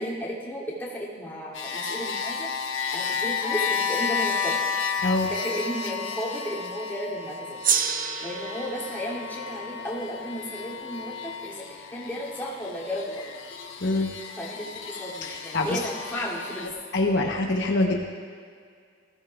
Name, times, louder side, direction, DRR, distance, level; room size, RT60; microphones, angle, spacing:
voice 1, 0.0-4.6 5.2-7.6 8.2-13.2 14.4-16.7, equal, 10° left, -7 dB, 3.0 m, -34 dB
sound 1, 1.5-16.7, left 5 dB, 85° left, 1.2 m, -32 dB
Gong, 7.6-12.4, right 7 dB, 45° right, 0.7 m, -31 dB
voice 2, 15.2-15.8 16.9-18.0, left 2 dB, 65° left, 0 dB, 1.1 m, -24 dB
20.0 x 16.0 x 2.5 m, 2.1 s
head